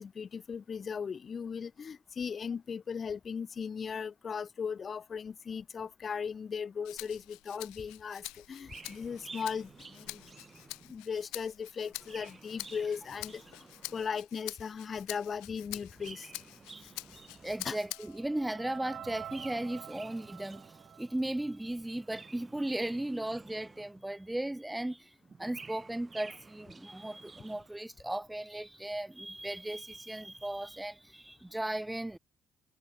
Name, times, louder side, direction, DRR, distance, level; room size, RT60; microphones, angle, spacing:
voice 1, 0.0-10.2 10.9-13.7 13.9-16.3 17.6-17.8, left 6 dB, 40° left, 0.9 m, -38 dB
Rattle (instrument), 6.8-18.3 18.7-19.9, left 24 dB, 70° left, 0.6 m, -46 dB
Chirp tweet, 8.6-11.1 11.8-14.2 15.8-17.9 19.2-21.1 21.9-24.2 25.2-27.8, right 4 dB, 30° right, 0.9 m, -52 dB
sound 1, 17.1-22.2, right 10 dB, 55° right, 4.5 m, -50 dB
voice 2, 17.4-32.2, right 1 dB, 10° right, 0.5 m, -36 dB
figure-of-eight pair, 45°, 0 cm